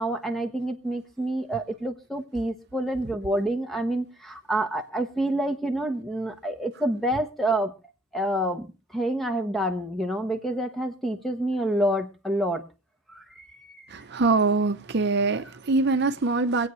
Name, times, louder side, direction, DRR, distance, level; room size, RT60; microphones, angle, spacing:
voice 1, 0.0-7.7 8.1-8.7 8.9-12.6 13.1-14.0, right 1 dB, ahead, 1.1 m, -28 dB
voice 2, 13.9-16.7, right 3 dB, 55° right, 0.7 m, -23 dB
25.0 x 8.5 x 3.1 m
head